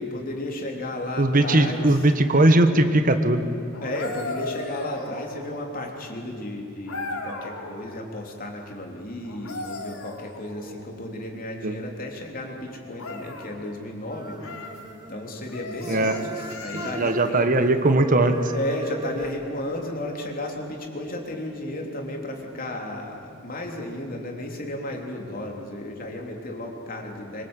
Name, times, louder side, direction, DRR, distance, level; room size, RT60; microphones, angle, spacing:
voice 1, 0.0-2.1 3.8-14.4 15.1-17.6 18.2-27.4, left 1 dB, 40° left, 1 dB, 3.6 m, -33 dB
voice 2, 1.2-3.4 11.6-11.8 15.9-16.1 16.7-18.5, right 2 dB, 40° right, 8 dB, 1.3 m, -19 dB
sound 1, 3.7-5.7 6.9-7.8 9.2-10.9 13.0-13.6 14.4-14.8 15.5-17.3 19.2-19.4, left 2 dB, 85° left, 3.7 m, -36 dB
sound 2, 14.1-15.5 15.8-19.4, right 2 dB, 20° right, 1.4 m, -37 dB
25.5 x 23.5 x 8.2 m, 2.9 s
head